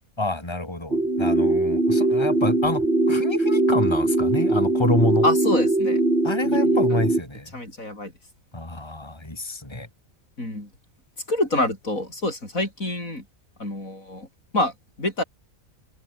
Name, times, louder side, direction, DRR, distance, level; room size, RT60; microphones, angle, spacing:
voice 1, 0.2-5.3 6.2-7.5 8.5-9.9, left 1 dB, 20° left, 4.1 m, -27 dB
sound 1, 0.9-7.2, right 2 dB, 50° right, 4.9 m, -21 dB
voice 2, 5.2-6.0 6.4-7.0 7.5-8.1 10.4-10.7 11.3-13.2 13.6-14.3 14.5-14.7 15.0-15.2, left 1 dB, 80° left, 8.3 m, -27 dB
omnidirectional pair, 1.4 m